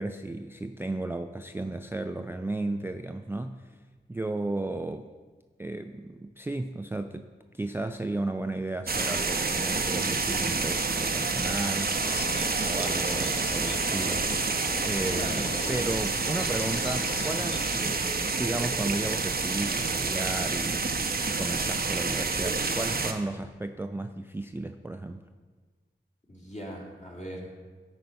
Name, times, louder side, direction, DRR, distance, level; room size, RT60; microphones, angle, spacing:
voice 1, 0.0-3.7 4.1-5.1 5.6-12.0 12.6-14.3 14.8-17.9 18.4-20.9 21.3-25.2, right 2 dB, 10° right, 7 dB, 0.3 m, -34 dB
sound 1, 8.9-23.1, right 4 dB, 50° right, 0.7 m, -28 dB
sound 2, 12.0-17.8, left 5 dB, 60° left, 0.6 m, -40 dB
voice 2, 15.2-15.9 16.4-16.6 17.8-18.0 26.3-27.5, equal, 35° left, -1 dB, 2.0 m, -40 dB
10.0 x 4.0 x 5.6 m, 1.4 s
cardioid pair, 55°, 20 cm